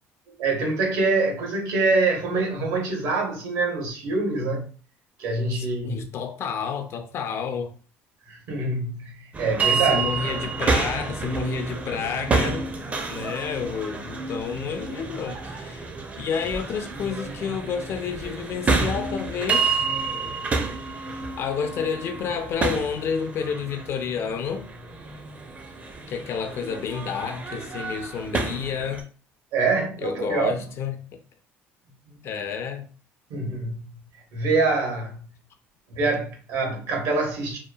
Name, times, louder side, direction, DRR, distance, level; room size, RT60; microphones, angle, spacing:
voice 1, 0.3-4.7 5.2-6.0 8.3-10.1 29.5-30.5 32.1-32.2 33.3-34.0 34.3-35.3 35.9-37.6, right 3 dB, 75° right, 1.0 m, -25 dB
voice 2, 5.5-7.7 9.9-12.7 13.1-15.9 16.2-19.9 21.1-24.7 26.1-29.1 30.0-31.0 32.2-32.9, left 6 dB, 50° left, 0.5 m, -30 dB
sound 1, 9.3-29.0, right 4 dB, 25° right, 0.5 m, -29 dB
2.8 x 2.3 x 2.3 m
cardioid pair, 110°, 5 cm